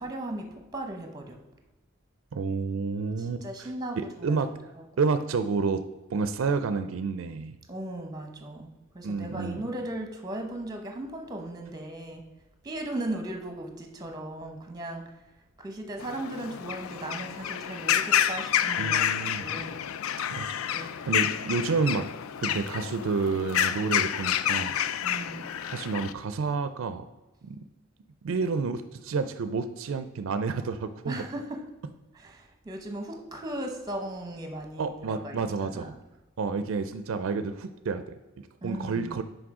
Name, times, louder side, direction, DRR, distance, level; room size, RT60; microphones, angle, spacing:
voice 1, 0.0-1.4 3.2-4.4 4.8-4.9 7.7-12.2 12.6-15.0 15.6-19.8 20.7-20.9 25.0-25.5 31.1-31.6 32.1-35.4 35.7-36.0 38.6-39.1, right 1 dB, 20° right, 4 dB, 0.8 m, -37 dB
voice 2, 2.3-4.5 5.0-5.8 6.1-7.6 9.0-9.6 18.8-19.5 20.3-22.1 22.4-24.7 25.7-27.1 27.4-27.6 28.2-31.2 34.8-35.9 36.4-39.2, right 4 dB, 70° right, 11 dB, 0.4 m, -30 dB
sound 1, 16.0-26.1, left 10 dB, 75° left, 0.3 m, -29 dB
6.1 x 5.1 x 4.8 m, 1.1 s
head